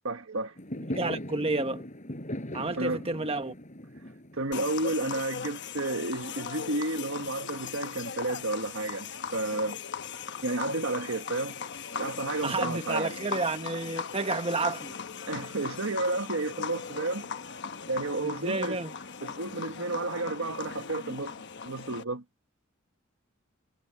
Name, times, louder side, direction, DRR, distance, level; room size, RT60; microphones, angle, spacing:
voice 1, 0.0-0.6 2.8-3.0 4.3-9.8 10.4-11.6 12.0-13.1 15.3-17.3 17.9-18.8 19.2-21.3 21.6-22.2, right 2 dB, 70° right, 1.6 m, -31 dB
Fireworks, 0.6-5.8, left 1 dB, 40° left, 6.4 m, -39 dB
voice 2, 0.9-1.8 2.5-3.5 12.4-15.0 18.2-18.9, right 3 dB, 30° right, 1.4 m, -30 dB
sound 1, 4.5-22.0, left 6 dB, 60° left, 1.1 m, -38 dB
head